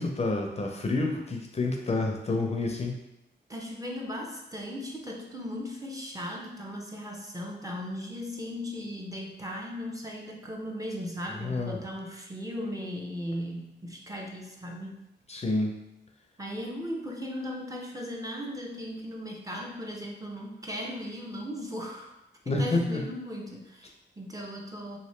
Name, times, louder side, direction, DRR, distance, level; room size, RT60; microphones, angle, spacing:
voice 1, 0.0-2.9 11.4-11.8 15.3-15.8 22.5-23.0, left 2 dB, 35° left, 1 dB, 0.4 m, -28 dB
voice 2, 3.5-15.0 16.4-22.1 22.5-25.0, equal, 20° right, 0 dB, 0.5 m, -37 dB
2.9 x 2.6 x 3.1 m, 0.88 s
wide cardioid pair, 90°, 20 cm